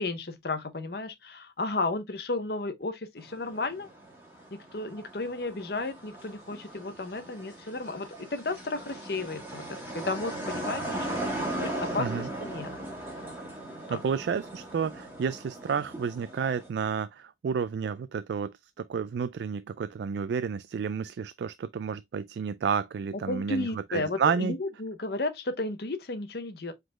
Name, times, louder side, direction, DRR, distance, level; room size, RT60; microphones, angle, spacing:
voice 1, 0.0-3.9 4.5-12.7 13.9-14.0 23.1-26.7, left 2 dB, 60° left, 0.7 m, -33 dB
sound 1, 3.2-16.7, right 1 dB, 15° right, 2.5 m, -38 dB
voice 2, 12.0-12.3 13.9-24.5, right 6 dB, 70° right, 0.3 m, -31 dB
5.0 x 3.9 x 2.3 m
head